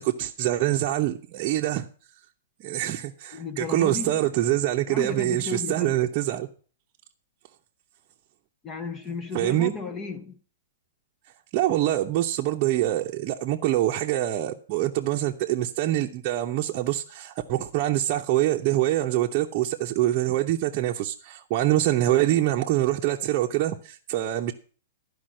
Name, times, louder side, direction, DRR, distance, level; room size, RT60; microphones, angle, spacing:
voice 1, 0.0-1.9 2.6-6.5 9.3-9.7 11.5-24.5, right 14 dB, 35° right, 0.8 m, -25 dB
voice 2, 3.3-4.3 4.9-5.9 8.6-10.4, left 5 dB, 20° left, 0.8 m, -34 dB
11.5 x 5.1 x 7.6 m
hypercardioid pair, 145°, 0 cm